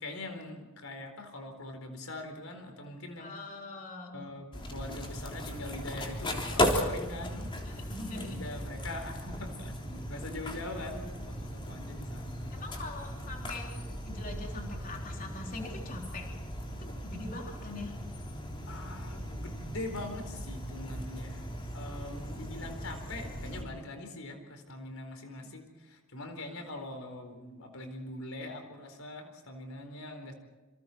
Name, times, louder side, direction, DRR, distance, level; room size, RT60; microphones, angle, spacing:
voice 1, 0.0-3.3 4.1-7.6 8.1-12.5 18.6-21.5 21.7-30.3, left 2 dB, 85° left, 5 dB, 4.3 m, -42 dB
voice 2, 3.2-4.2 7.6-8.4 12.5-16.3 16.7-17.9, left 2 dB, 40° left, 0 dB, 3.7 m, -42 dB
sound 1, 4.5-23.6, equal, 25° left, 3.5 m, -37 dB
28.0 x 26.5 x 4.6 m, 1.2 s
head